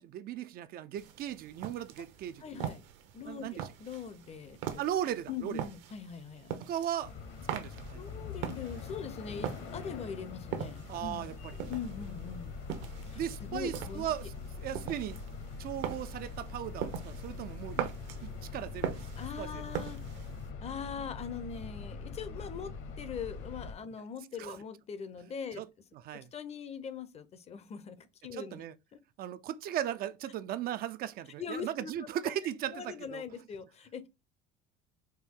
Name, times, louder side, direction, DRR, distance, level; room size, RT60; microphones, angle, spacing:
voice 1, 0.0-2.4 3.3-3.6 4.8-5.5 6.6-7.1 7.5-8.0 10.9-11.3 13.1-15.2 15.6-17.9 18.2-19.0 19.4-19.6 24.4-24.6 25.6-25.7 26.0-26.3 28.3-28.7 29.2-33.2, right 11 dB, 50° right, 0.4 m, -37 dB
sound 1, 1.0-20.5, right 9 dB, 70° right, 0.8 m, -42 dB
voice 2, 2.4-2.8 3.1-4.8 5.3-6.5 7.9-11.3 11.7-12.5 13.1-14.1 19.2-20.0 20.6-25.6 26.1-28.6 28.9-29.0 31.4-31.9 32.7-34.1, left 7 dB, 30° left, 0.6 m, -42 dB
sound 2, 7.0-23.7, left 4 dB, 65° left, 1.2 m, -43 dB
4.4 x 2.6 x 3.6 m
cardioid pair, 120°, 20 cm